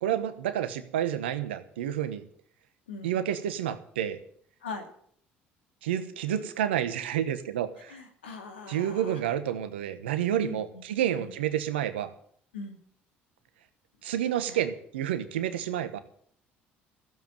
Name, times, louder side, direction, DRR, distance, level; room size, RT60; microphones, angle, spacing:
voice 1, 0.0-2.2 3.0-4.2 5.8-8.0 8.7-12.1 14.0-16.0, right 10 dB, 85° right, 12 dB, 1.1 m, -29 dB
voice 2, 7.9-9.2 10.4-10.8 11.1-11.3 12.5-12.8 14.5-14.6, left 3 dB, 90° left, 5 dB, 2.1 m, -40 dB
14.5 x 7.7 x 9.3 m, 0.63 s
hypercardioid pair, 60°, 6 cm